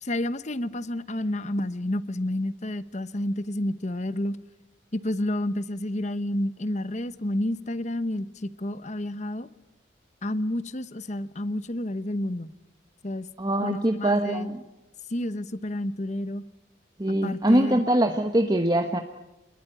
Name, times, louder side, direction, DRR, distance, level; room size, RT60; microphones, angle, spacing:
voice 1, 0.0-4.4 4.9-9.5 10.2-12.5 13.0-13.3 13.6-14.5 15.1-16.4 17.1-17.8, left 1 dB, 40° left, 14 dB, 1.0 m, -30 dB
voice 2, 13.4-14.6 17.0-19.0, right 1 dB, 20° right, 6 dB, 1.1 m, -23 dB
27.5 x 21.0 x 9.9 m, 1.0 s
head